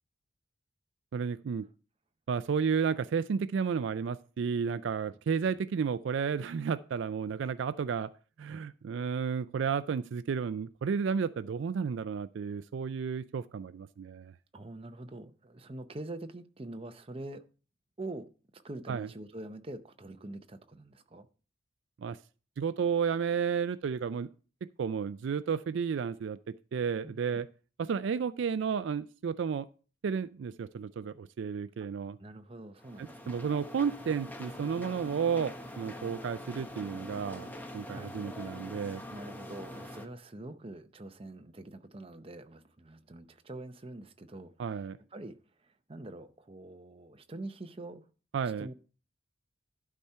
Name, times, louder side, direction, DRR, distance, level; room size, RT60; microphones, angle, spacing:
voice 1, 1.1-1.7 2.3-8.1 8.4-14.3 18.9-19.1 22.0-22.2 22.6-24.3 24.8-27.5 27.8-29.7 30.0-32.2 33.0-37.5 37.7-39.0 44.6-45.0 48.3-48.7, right 6 dB, 65° right, 14 dB, 0.3 m, -32 dB
voice 2, 5.1-5.5 14.5-17.5 18.0-21.3 27.0-27.4 31.8-31.9 32.2-33.5 37.9-38.2 39.1-44.8 45.1-48.1 48.5-48.7, right 2 dB, 30° right, 8 dB, 0.6 m, -45 dB
sound 1, 32.8-40.1, left 1 dB, 10° left, 0.8 m, -44 dB
12.0 x 4.3 x 5.6 m, 0.37 s
head